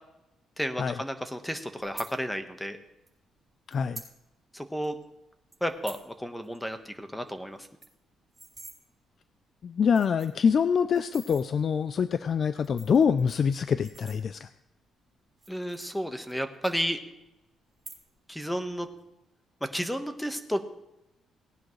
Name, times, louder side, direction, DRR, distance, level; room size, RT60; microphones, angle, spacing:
voice 1, 0.6-2.8 4.5-4.9 5.6-7.7 15.5-17.0 18.3-18.9 19.7-20.6, equal, 5° left, 8 dB, 1.3 m, -32 dB
sound 1, 1.8-2.1 3.1-3.2 3.7-4.1 4.5-4.6 4.8-5.1 5.5-6.1 6.4-6.6 6.9-7.0 7.3-7.4 7.6-8.8 9.4-9.5 9.9-10.5 11.0-11.4 12.4-14.6 15.3-16.4 16.6-17.3 17.7-18.3 18.6-19.0, right 3 dB, 25° right, 5.3 m, -47 dB
voice 2, 3.7-4.0 9.6-14.5, left 6 dB, 50° left, 13 dB, 0.4 m, -25 dB
18.5 x 10.5 x 3.2 m, 0.90 s
cardioid pair, 90°, 0 cm